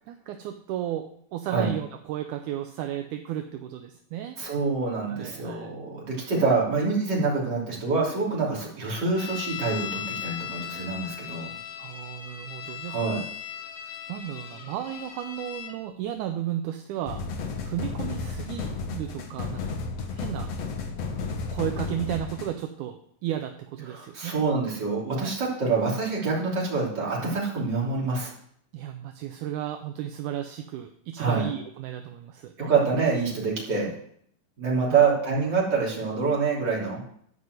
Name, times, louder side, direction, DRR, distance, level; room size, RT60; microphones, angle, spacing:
voice 1, 0.1-4.4 5.1-5.7 11.8-13.2 13.8-19.8 20.1-20.5 21.5-24.3 25.2-25.4 28.7-32.5 34.9-35.1, right 11 dB, 75° right, 6 dB, 2.0 m, -34 dB
voice 2, 4.4-11.5 12.9-13.2 23.9-28.3 31.2-31.4 32.6-33.9 34.6-37.0, right 4 dB, 30° right, -4 dB, 3.5 m, -26 dB
sound 1, 9.2-15.8, left 10 dB, 90° left, 3.3 m, -38 dB
sound 2, 17.1-22.5, left 4 dB, 60° left, 1.9 m, -33 dB
12.5 x 5.4 x 7.9 m, 0.66 s
omnidirectional pair, 3.8 m